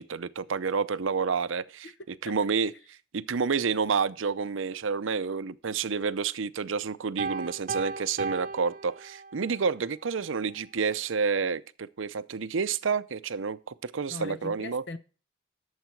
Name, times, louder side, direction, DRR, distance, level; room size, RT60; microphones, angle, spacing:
voice 1, 0.0-1.9 2.2-2.7 3.1-14.8, right 5 dB, 85° right, 0.6 m, -29 dB
Piano, 7.2-9.6, right 4 dB, 45° right, 0.6 m, -35 dB
voice 2, 14.1-15.0, left 3 dB, 60° left, 0.9 m, -40 dB
12.0 x 7.3 x 4.6 m
head